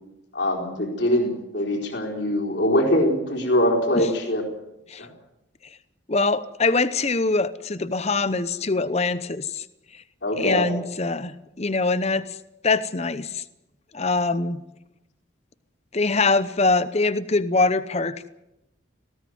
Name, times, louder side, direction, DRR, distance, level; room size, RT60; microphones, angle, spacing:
voice 1, 0.3-4.4 5.0-5.1 10.2-10.7, left 1 dB, 55° left, 1 dB, 4.4 m, -23 dB
voice 2, 6.1-9.6 10.3-12.2 12.6-13.4 13.9-14.6 15.9-18.3, left 3 dB, 30° left, 14 dB, 0.8 m, -23 dB
19.0 x 17.0 x 9.4 m, 0.89 s
head